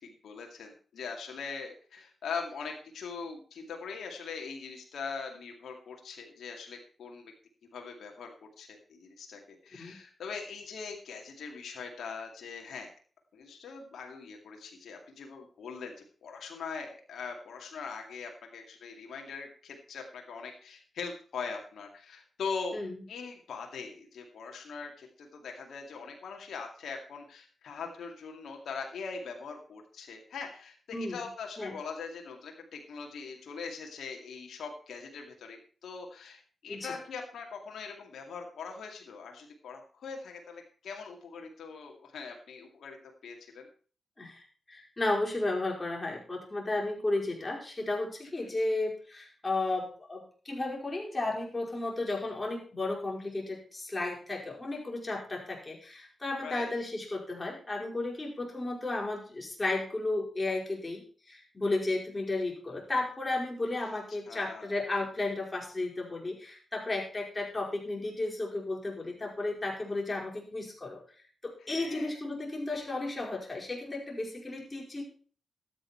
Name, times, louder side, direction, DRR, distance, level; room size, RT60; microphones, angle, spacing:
voice 1, 0.0-7.3 7.7-8.3 8.6-12.9 13.3-15.9 16.2-22.8 23.1-43.0 43.2-43.7 48.4-48.5 56.4-56.7 63.8-64.0 64.3-64.7 71.6-72.1, left 5 dB, 80° left, 2 dB, 2.3 m, -41 dB
voice 2, 22.7-23.0 30.9-31.2 31.6-31.8 36.7-36.9 44.2-71.0 71.4-75.0, left 2 dB, 30° left, -1 dB, 5.2 m, -33 dB
12.5 x 9.4 x 4.5 m, 0.41 s
supercardioid pair, 45°, 0 cm